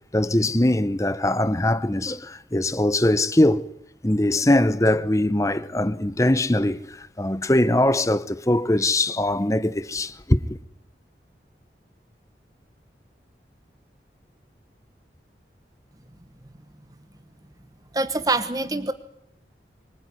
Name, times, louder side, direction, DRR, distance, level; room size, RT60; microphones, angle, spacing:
voice 1, 0.1-3.7 4.0-10.6, left 1 dB, 20° left, 0.9 m, -21 dB
voice 2, 17.9-18.9, right 2 dB, 20° right, 1.1 m, -24 dB
24.5 x 20.0 x 9.6 m
head